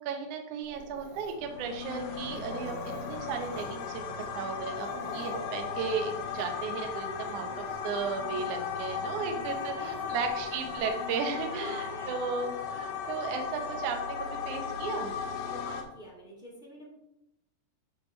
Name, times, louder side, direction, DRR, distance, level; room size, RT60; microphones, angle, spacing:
voice 1, 0.0-4.9 5.1-15.1, right 5 dB, 85° right, 4 dB, 1.7 m, -35 dB
Dog, 0.6-10.9, right 2 dB, 60° right, 1.9 m, -51 dB
sound 1, 1.4-15.8, left 6 dB, 85° left, 3.1 m, -36 dB
voice 2, 4.9-5.3 8.2-8.6 9.2-10.2 11.5-12.2 15.5-16.9, equal, ahead, -4 dB, 0.9 m, -47 dB
13.5 x 4.5 x 3.3 m, 0.84 s
omnidirectional pair, 5.1 m